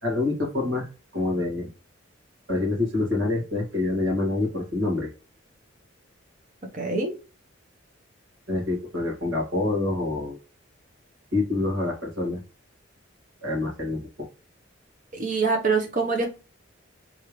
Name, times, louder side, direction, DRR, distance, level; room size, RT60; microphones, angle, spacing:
voice 1, 0.0-0.9 1.1-1.7 2.5-5.1 8.5-10.4 11.3-12.4 13.4-14.3, left 2 dB, 75° right, -3 dB, 2.1 m, -26 dB
voice 2, 6.7-7.1 15.1-16.3, right 4 dB, 40° right, 2 dB, 1.1 m, -24 dB
3.5 x 3.4 x 3.2 m, 0.33 s
head